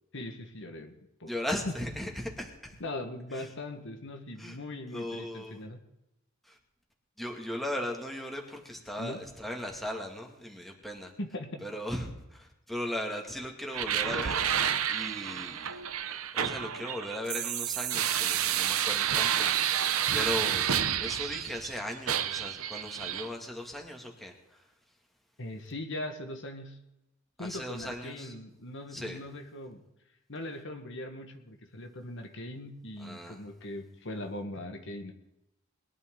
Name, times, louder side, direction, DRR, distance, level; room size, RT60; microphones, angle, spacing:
voice 1, 0.1-0.9 1.2-1.3 1.7-1.8 2.8-5.8 9.0-9.2 11.2-11.6 25.4-26.8 27.4-29.8 30.3-35.1, left 1 dB, 65° left, 4 dB, 1.6 m, -40 dB
voice 2, 1.3-2.7 3.3-3.5 4.4-4.6 4.9-5.7 6.4-6.6 7.2-11.1 11.6-15.8 16.1-20.7 21.0-24.7 27.4-28.3 28.9-29.2 33.0-33.4, left 1 dB, ahead, 1 dB, 2.2 m, -38 dB
sound 1, 13.7-21.7 22.1-23.3, right 9 dB, 85° right, 0.8 m, -30 dB
21.5 x 12.0 x 3.9 m, 0.90 s
head